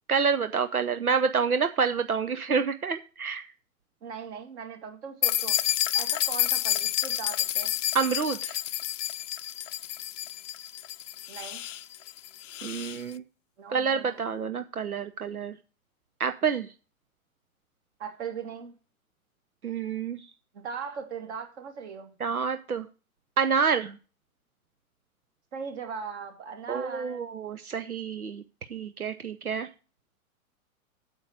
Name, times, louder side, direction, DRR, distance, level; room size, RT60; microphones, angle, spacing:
voice 1, 0.1-3.5 7.9-8.6 12.6-13.2 13.7-15.6 16.2-16.7 19.6-20.3 22.2-22.9 23.4-24.0 26.7-28.4 28.7-29.7, right 6 dB, 90° right, 0.7 m, -28 dB
voice 2, 4.0-5.6 5.9-7.7 11.3-11.6 13.6-14.2 18.0-18.7 20.5-22.1 25.5-27.3, right 6 dB, 50° right, 2.5 m, -39 dB
sound 1, 5.2-13.0, left 12 dB, 60° left, 0.6 m, -29 dB
9.0 x 7.5 x 4.9 m
figure-of-eight pair, 100°, 43 cm